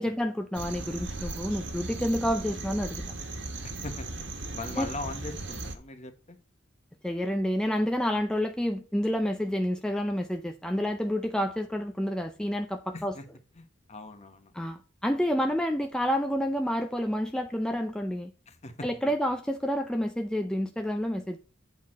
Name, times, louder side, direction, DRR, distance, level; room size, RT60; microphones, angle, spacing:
voice 1, 0.0-3.0 4.8-4.9 7.0-13.1 14.6-18.3 18.8-21.4, equal, 5° left, 0.5 m, -29 dB
sound 1, 0.5-5.8, right 2 dB, 70° right, 1.5 m, -37 dB
voice 2, 3.6-6.4 12.9-13.3 13.5-14.7 18.5-18.9, left 2 dB, 35° left, 1.2 m, -41 dB
8.3 x 4.4 x 5.9 m
head